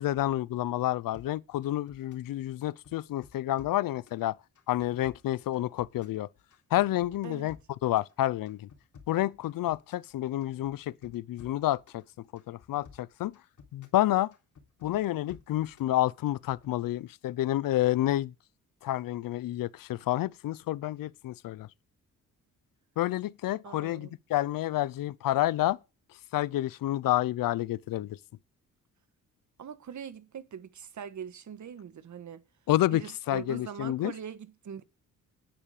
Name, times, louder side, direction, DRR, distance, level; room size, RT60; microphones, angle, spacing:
voice 1, 0.0-4.3 4.7-6.3 6.7-7.6 7.8-8.7 9.1-12.0 12.5-13.3 13.7-14.3 14.8-18.3 18.8-21.7 23.0-25.8 26.3-28.2 32.7-34.1, left 14 dB, 75° left, 0.7 m, -29 dB
sound 1, 1.1-2.3 2.6-4.2 4.5-6.2 6.5-8.1 8.4-10.1 10.4-12.0 12.4-14.0 14.3-15.9 16.3-16.7, left 6 dB, 60° left, 3.6 m, -54 dB
voice 2, 7.2-7.5 23.6-24.1 29.6-32.4 32.9-34.8, right 8 dB, 60° right, 1.5 m, -42 dB
10.5 x 10.0 x 5.0 m
cardioid pair, 70°, 34 cm